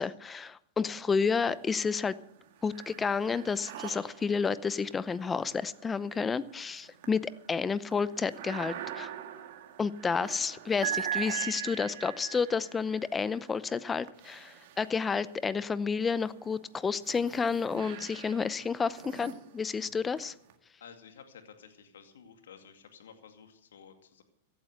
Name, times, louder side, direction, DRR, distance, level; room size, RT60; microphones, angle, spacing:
voice 1, 0.0-2.1 2.6-9.1 9.8-20.3, left 5 dB, 15° left, 17 dB, 0.7 m, -30 dB
sound 1, 1.2-1.9 2.2-15.4 16.0-20.5, right 9 dB, 65° right, 1.8 m, -42 dB
voice 2, 20.8-24.2, left 7 dB, 80° left, 6 dB, 2.3 m, -53 dB
15.0 x 8.8 x 7.9 m, 0.71 s
hypercardioid pair, 115°, 0 cm